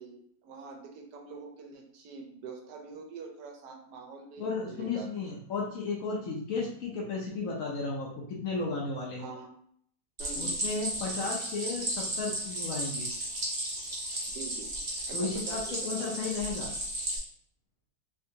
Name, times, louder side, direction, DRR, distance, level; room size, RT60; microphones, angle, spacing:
voice 1, 0.0-5.1 9.2-9.5 10.2-10.6 14.3-14.7 15.1-15.6 16.0-16.2, right 5 dB, 75° right, 2 dB, 1.2 m, -45 dB
voice 2, 4.4-9.3 10.4-13.1 15.1-16.7, left 4 dB, 65° left, -3 dB, 0.9 m, -34 dB
Stream, 10.2-17.2, right 1 dB, 35° right, 0.8 m, -34 dB
3.5 x 2.8 x 2.6 m, 0.66 s
omnidirectional pair, 1.9 m